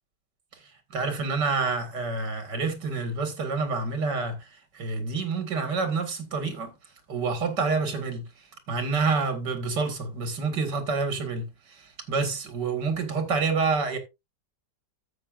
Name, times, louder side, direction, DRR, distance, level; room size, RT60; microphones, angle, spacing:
voice 1, 0.9-4.4 4.7-6.7 7.1-8.2 8.7-11.5 11.8-14.0, right 4 dB, 75° right, 2.8 m, -28 dB
13.0 x 8.1 x 2.5 m
omnidirectional pair, 1.8 m